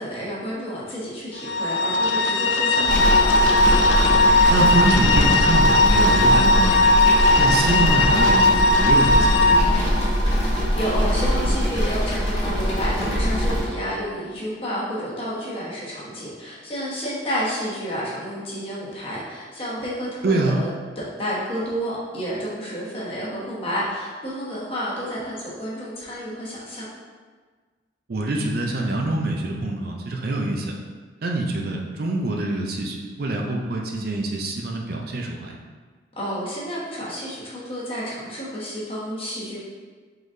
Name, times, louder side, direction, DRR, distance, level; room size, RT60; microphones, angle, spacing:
voice 1, 0.0-3.2 10.4-20.7 21.0-26.9 36.2-39.6, equal, 30° left, -7 dB, 1.2 m, -30 dB
sound 1, 1.4-9.6, left 2 dB, 90° left, 0.4 m, -18 dB
sound 2, 2.9-13.7, equal, 70° left, 1.4 m, -22 dB
voice 2, 4.5-6.9 7.4-9.8 20.2-20.6 28.1-30.7 31.2-35.6, right 2 dB, 55° right, 0 dB, 0.5 m, -25 dB
4.8 x 3.9 x 2.6 m, 1.5 s
head